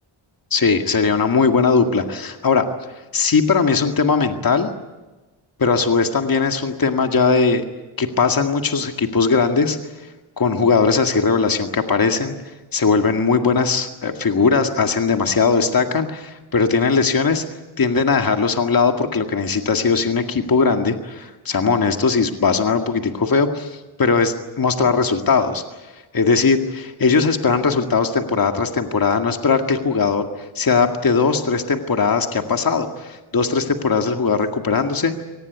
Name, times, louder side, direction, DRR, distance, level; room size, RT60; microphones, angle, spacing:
voice 1, 0.5-2.7 3.1-4.7 5.6-7.6 8.0-9.8 10.4-12.4 12.7-17.4 17.8-35.1, left 5 dB, 45° left, 5 dB, 2.0 m, -19 dB
24.0 x 19.0 x 9.5 m, 1.2 s
cardioid pair, 80°, 50 cm